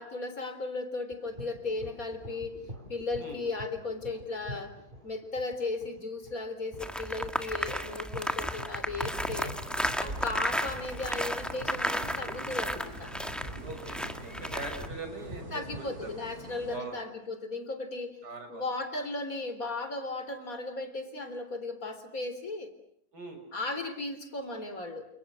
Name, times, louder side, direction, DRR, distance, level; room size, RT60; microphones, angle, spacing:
voice 1, 0.0-2.6 2.9-4.8 5.0-9.5 10.0-13.1 15.5-18.2 18.5-22.7 23.5-25.1, left 3 dB, 60° left, 9 dB, 4.4 m, -36 dB
sound 1, 1.1-16.1, equal, 30° right, 4.9 m, -46 dB
sound 2, 6.8-14.9, equal, ahead, 1.7 m, -34 dB
sound 3, 9.0-16.8, right 1 dB, 65° right, 5.2 m, -46 dB
voice 2, 10.0-10.4 13.6-16.1 16.7-17.0 18.2-18.7 23.1-23.4, right 2 dB, 90° right, 5 dB, 6.9 m, -42 dB
29.5 x 29.0 x 6.3 m, 0.68 s
omnidirectional pair, 1.7 m